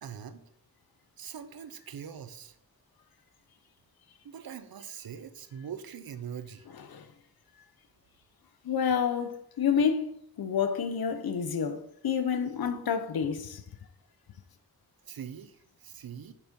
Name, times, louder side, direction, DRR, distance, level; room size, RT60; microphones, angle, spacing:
voice 1, 0.0-0.4 1.2-2.6 4.2-6.7 15.0-16.3, right 8 dB, 75° right, 0.9 m, -42 dB
voice 2, 8.6-13.6, left 7 dB, 85° left, 1.0 m, -29 dB
7.2 x 6.8 x 5.3 m
wide cardioid pair, 115°, 36 cm